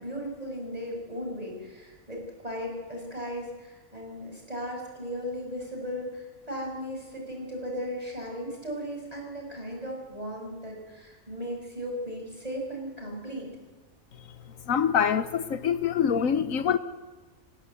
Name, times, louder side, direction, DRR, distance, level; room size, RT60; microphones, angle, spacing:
voice 1, 0.0-13.5, equal, 25° right, 6.6 m, -36 dB
voice 2, 14.7-16.8, left 7 dB, 75° left, 1.3 m, -25 dB
27.5 x 16.5 x 8.2 m
omnidirectional pair, 1.5 m